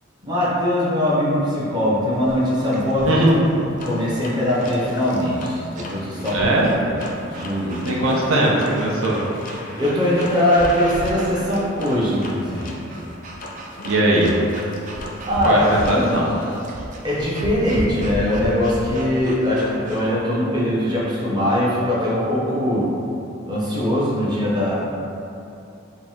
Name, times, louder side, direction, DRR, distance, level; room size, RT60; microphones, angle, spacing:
voice 1, 0.2-3.2 3.8-6.4 6.8-7.0 7.3-7.8 9.8-12.7 15.2-15.6 15.9-16.2 17.0-22.9 23.5-24.7, left 1 dB, 20° right, -7 dB, 0.8 m, -21 dB
sound 1, 2.2-20.1, right 1 dB, 40° right, 0.4 m, -36 dB
voice 2, 3.0-3.5 6.3-6.7 7.8-9.2 13.8-14.3 15.4-16.3, right 1 dB, 85° right, -4 dB, 0.7 m, -19 dB
sound 2, 3.8-16.6, left 1 dB, 40° left, 0.4 m, -37 dB
4.8 x 2.1 x 3.6 m, 2.7 s
head